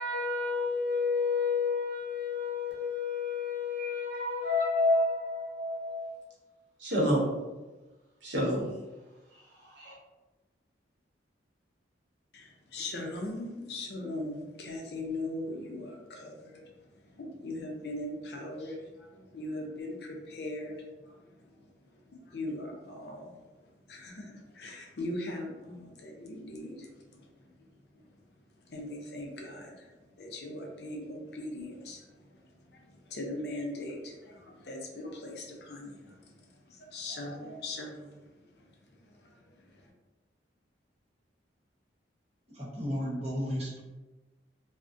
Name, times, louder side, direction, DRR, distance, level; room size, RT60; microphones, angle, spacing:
voice 1, 0.0-6.1 6.8-7.3 8.2-8.7 9.8-9.9, left 3 dB, 85° right, -5 dB, 0.8 m, -29 dB
voice 2, 12.3-16.6 17.2-18.8 19.3-20.8 22.3-23.3 23.9-26.9 28.7-29.7 30.2-32.0 33.1-36.1 36.9-38.1, left 1 dB, 60° left, 0 dB, 0.5 m, -39 dB
voice 3, 42.5-43.8, equal, 35° right, -6 dB, 0.8 m, -33 dB
2.4 x 2.0 x 2.5 m, 1.2 s
head